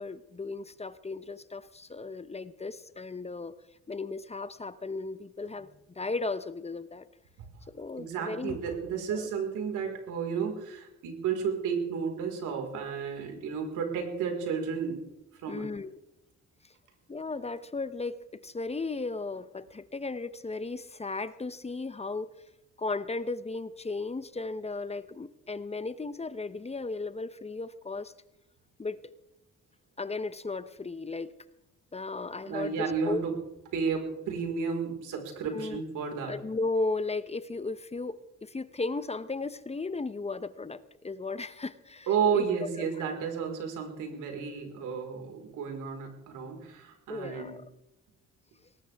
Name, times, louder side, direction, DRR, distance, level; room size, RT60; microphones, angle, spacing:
voice 1, 0.0-3.5 3.9-7.1 7.7-8.6 9.1-9.3 15.5-16.0 17.1-22.3 22.8-28.1 28.8-29.0 30.0-31.3 31.9-33.2 35.5-35.8 36.2-42.1 42.3-42.5 42.8-42.9 47.1-47.7, left 3 dB, 20° left, 14 dB, 0.9 m, -35 dB
voice 2, 8.0-15.0 15.4-15.7 32.4-33.3 33.7-36.3 42.1-47.5, right 6 dB, 90° right, 2 dB, 4.7 m, -32 dB
20.5 x 18.5 x 3.6 m, 0.89 s
cardioid pair, 90°, 30 cm